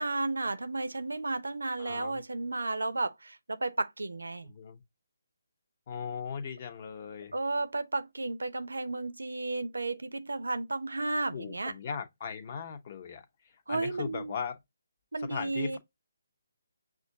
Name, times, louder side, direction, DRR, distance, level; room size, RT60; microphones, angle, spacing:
voice 1, 0.0-4.5 7.3-11.8 13.7-14.3 15.1-15.8, right 2 dB, 80° right, 0.6 m, -33 dB
voice 2, 1.8-2.2 4.4-4.8 5.9-7.3 11.3-13.2 13.7-14.6 15.3-15.8, left 6 dB, 40° left, 1.0 m, -38 dB
6.0 x 2.5 x 2.7 m
figure-of-eight pair, 150°, 0 cm